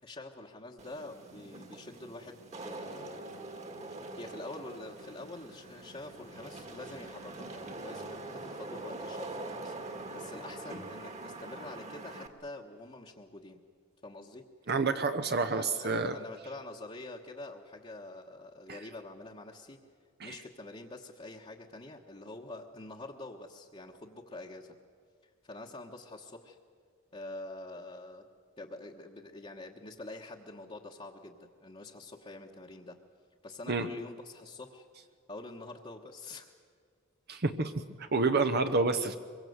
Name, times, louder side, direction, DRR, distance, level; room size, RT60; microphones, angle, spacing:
voice 1, 0.0-3.3 4.2-13.6 14.0-14.7 15.5-19.8 20.2-24.8 25.4-26.6 27.1-28.3 28.6-33.0 33.4-34.9 35.3-36.5, left 2 dB, 30° left, -2 dB, 1.3 m, -46 dB
Wind / Rain, 0.8-12.3, right 2 dB, 35° right, 1.8 m, -44 dB
voice 2, 14.7-16.1 18.7-18.8 20.2-20.3 33.7-33.9 37.3-39.2, right 3 dB, 50° right, 8 dB, 0.9 m, -29 dB
24.5 x 22.5 x 8.0 m, 2.1 s
head